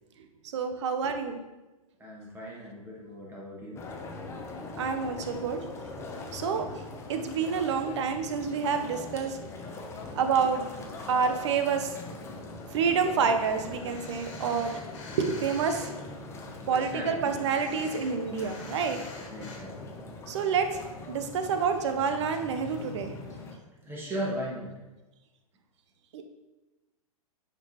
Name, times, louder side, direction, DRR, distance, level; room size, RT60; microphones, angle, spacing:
voice 1, 0.5-1.4 4.8-5.6 6.3-6.8 7.1-9.4 10.1-10.7 11.1-11.9 12.7-14.8 15.2-15.9 16.7-19.0 20.3-20.8 21.1-23.1 26.1-26.2, right 6 dB, 50° right, 7 dB, 0.8 m, -28 dB
voice 2, 2.0-3.8 16.7-17.3 18.4-18.5 19.3-19.7 23.9-24.7, equal, 10° right, -4 dB, 1.7 m, -37 dB
sound 1, 3.8-23.6, left 3 dB, 15° left, 0.8 m, -42 dB
sound 2, 13.3-15.9 16.4-19.6, left 4 dB, 50° left, 1.7 m, -47 dB
10.0 x 5.3 x 2.9 m, 1.1 s
figure-of-eight pair, 110°, 19 cm